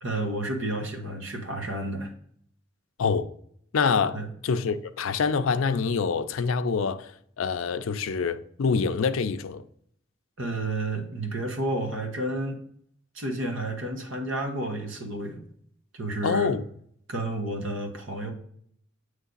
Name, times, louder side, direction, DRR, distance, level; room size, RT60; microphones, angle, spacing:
voice 1, 0.0-2.1 4.1-4.3 10.4-12.6 13.1-15.5 15.9-16.5 17.1-18.3, right 1 dB, 65° right, 1.2 m, -31 dB
voice 2, 3.0-3.3 3.7-7.1 7.4-9.6 16.2-16.6, left 5 dB, 80° left, 0.4 m, -26 dB
8.1 x 3.2 x 3.9 m
head